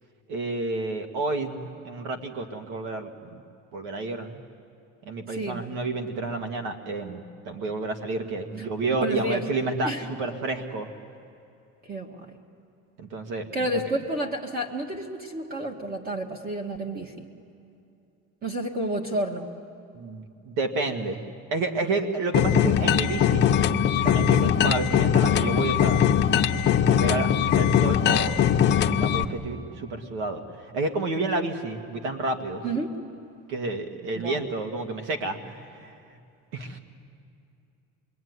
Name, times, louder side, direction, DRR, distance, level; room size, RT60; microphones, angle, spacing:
voice 1, 0.3-3.4 3.7-4.4 5.1-10.9 13.0-13.8 19.9-21.2 21.5-23.4 24.0-26.1 26.8-28.5 29.0-32.7 33.5-35.9 36.5-36.8, right 3 dB, 90° right, 5 dB, 2.1 m, -30 dB
voice 2, 5.3-5.6 8.6-8.7 9.0-9.4 9.8-10.1 11.8-12.2 13.5-17.3 18.4-19.5 24.4-24.6 32.6-32.9 34.2-34.4, right 1 dB, 30° right, 2 dB, 1.7 m, -30 dB
sound 1, 22.3-29.2, left 8 dB, 35° left, 0.8 m, -21 dB
27.0 x 23.0 x 9.6 m, 2.6 s
cardioid pair, 165°, 31 cm